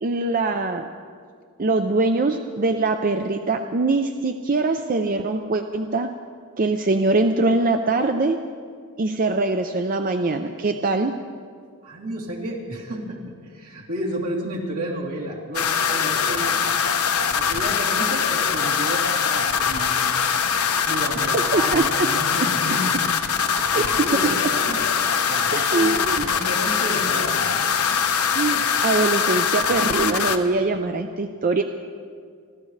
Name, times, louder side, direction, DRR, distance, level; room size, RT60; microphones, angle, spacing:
voice 1, 0.0-0.9 1.6-6.1 6.6-8.4 9.0-11.1 21.2-22.1 23.7-24.3 25.5-26.3 28.4-31.6, right 3 dB, 40° right, 6 dB, 0.5 m, -23 dB
voice 2, 11.8-16.7 17.3-20.1 20.8-24.8 25.3-27.5, right 1 dB, 75° right, -4 dB, 3.4 m, -32 dB
sound 1, 15.5-30.4, left 6 dB, 85° left, 1.0 m, -22 dB
29.5 x 13.5 x 3.3 m, 2.1 s
head